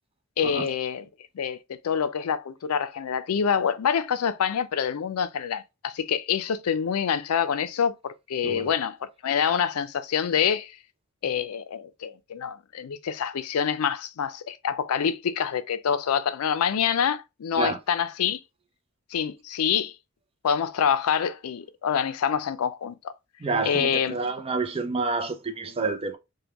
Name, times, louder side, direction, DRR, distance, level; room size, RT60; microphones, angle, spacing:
voice 1, 0.4-1.1 1.3-10.7 11.2-18.4 19.1-19.9 20.4-23.1 23.6-24.2, left 7 dB, 85° left, 0.4 m, -26 dB
voice 2, 23.4-26.2, right 3 dB, 25° right, 0.5 m, -28 dB
3.5 x 2.2 x 2.8 m
head